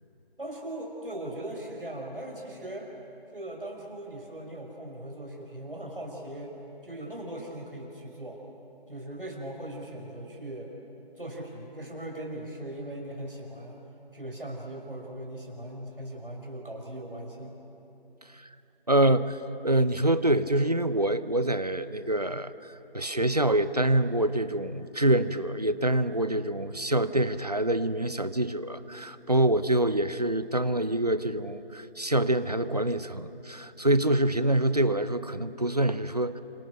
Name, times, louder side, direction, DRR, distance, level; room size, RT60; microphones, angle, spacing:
voice 1, 0.4-2.9 3.3-6.5 6.8-8.4 8.9-10.7 11.1-13.8 14.1-17.6, right 1 dB, 60° right, 0 dB, 5.6 m, -39 dB
voice 2, 18.9-19.4 19.6-36.4, right 1 dB, 40° right, 13 dB, 0.8 m, -26 dB
29.5 x 26.0 x 6.7 m, 3.0 s
figure-of-eight pair, 175°, 30 cm